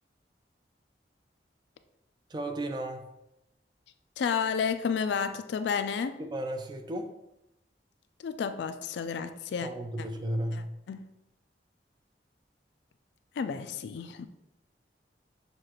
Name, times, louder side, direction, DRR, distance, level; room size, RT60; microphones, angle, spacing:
voice 1, 2.3-3.1 6.3-7.1 9.6-10.7, right 1 dB, 25° right, 6 dB, 0.3 m, -34 dB
voice 2, 4.2-6.2 8.2-9.7 10.9-11.0 13.4-14.3, left 6 dB, 75° left, 10 dB, 0.3 m, -31 dB
6.5 x 2.4 x 3.0 m, 0.87 s
head